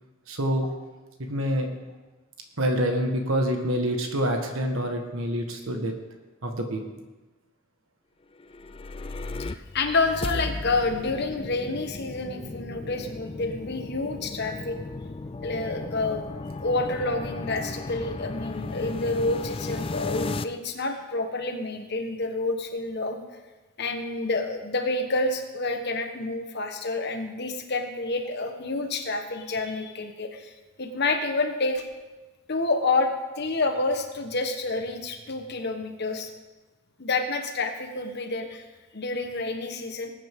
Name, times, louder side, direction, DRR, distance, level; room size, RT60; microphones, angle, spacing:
voice 1, 0.3-0.7 1.2-1.7 2.6-5.9 6.4-6.8, equal, 75° right, 4 dB, 1.5 m, -26 dB
sound 1, 8.4-20.4, left 3 dB, 25° left, 0.4 m, -35 dB
voice 2, 9.5-14.8 15.4-16.3 16.6-23.2 23.8-30.5 30.8-31.8 32.5-33.1 33.4-36.3 37.0-38.7 38.9-40.1, left 3 dB, 55° left, 5 dB, 1.3 m, -28 dB
19.5 x 9.0 x 3.7 m, 1.2 s
head